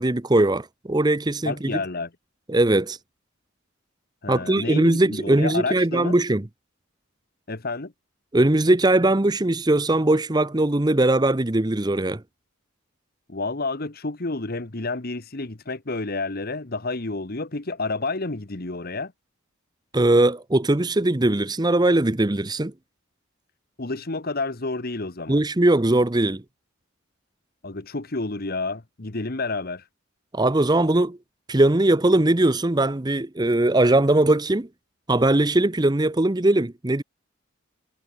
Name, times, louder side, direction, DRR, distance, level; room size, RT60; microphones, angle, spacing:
voice 1, 0.0-1.5 2.5-3.0 4.3-6.5 8.3-12.2 19.9-22.7 25.3-26.4 30.3-31.2 31.5-34.7 35.1-37.0, right 1 dB, 20° right, 0.7 m, -20 dB
voice 2, 1.4-2.1 4.2-6.1 7.5-7.9 13.3-19.1 23.8-25.4 27.6-29.8, left 3 dB, 45° left, 1.3 m, -30 dB
head